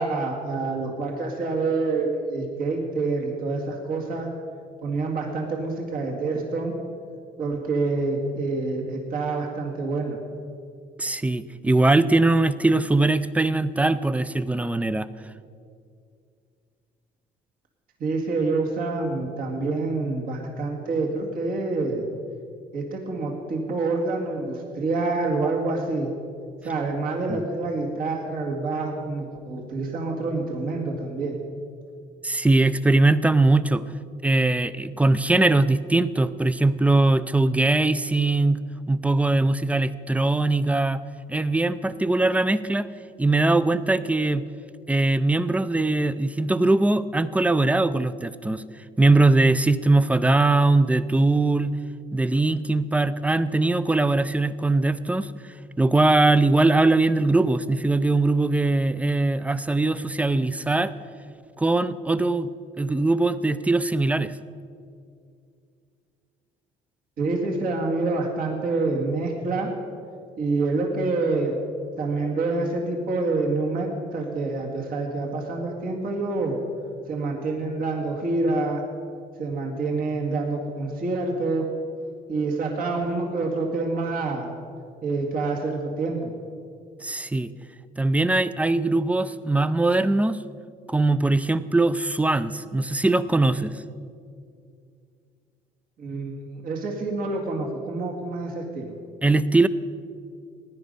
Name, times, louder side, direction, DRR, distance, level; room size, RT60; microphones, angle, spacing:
voice 1, 0.0-4.3 4.8-6.7 7.4-10.2 18.0-22.1 22.7-26.1 26.6-31.4 67.2-69.7 70.4-71.5 72.0-76.6 77.1-78.8 79.4-81.7 82.3-84.5 85.0-86.3 96.0-98.9, right 3 dB, 60° right, 0 dB, 2.0 m, -27 dB
voice 2, 11.0-15.1 27.3-27.4 32.2-33.8 34.2-38.6 38.9-41.0 41.3-42.9 43.2-44.4 44.9-48.6 49.0-51.8 52.1-55.3 55.8-60.9 61.6-62.5 62.8-64.3 87.0-87.5 88.0-90.4 90.9-93.7 99.2-99.7, right 2 dB, 10° right, 15 dB, 0.4 m, -21 dB
16.5 x 10.5 x 5.4 m, 2.3 s
cardioid pair, 110°, 17 cm